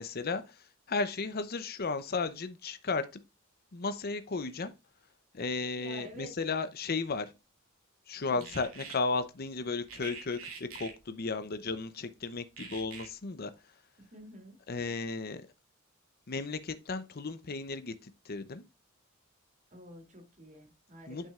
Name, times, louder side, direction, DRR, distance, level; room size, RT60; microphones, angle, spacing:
voice 1, 0.0-3.2 3.7-4.7 5.3-7.3 8.1-13.5 14.7-15.4 16.3-18.6 21.1-21.3, left 4 dB, 45° left, 0.7 m, -34 dB
voice 2, 5.8-6.3 8.3-8.5 14.0-14.6 19.7-21.3, equal, 35° right, 2.7 m, -49 dB
sound 1, 8.4-8.9 9.9-10.9 12.6-13.1, right 6 dB, 70° right, 2.9 m, -44 dB
8.3 x 6.2 x 2.4 m
head